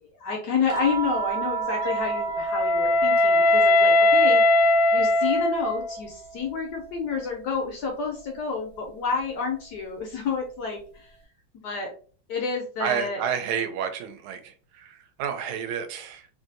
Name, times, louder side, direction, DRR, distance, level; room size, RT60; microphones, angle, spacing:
voice 1, 0.0-4.4 4.9-11.2 11.6-11.9 12.3-13.2, left 5 dB, 65° left, 1.0 m, -29 dB
sound 1, 0.7-5.2 5.5-7.2 8.7-8.9, right 6 dB, 65° right, 1.3 m, -34 dB
Wind instrument woodwind instrument, 1.8-6.0, left 2 dB, 90° left, 0.7 m, -20 dB
voice 2, 12.8-16.3, right 8 dB, 85° right, 1.4 m, -30 dB
3.2 x 2.6 x 2.5 m
omnidirectional pair, 2.3 m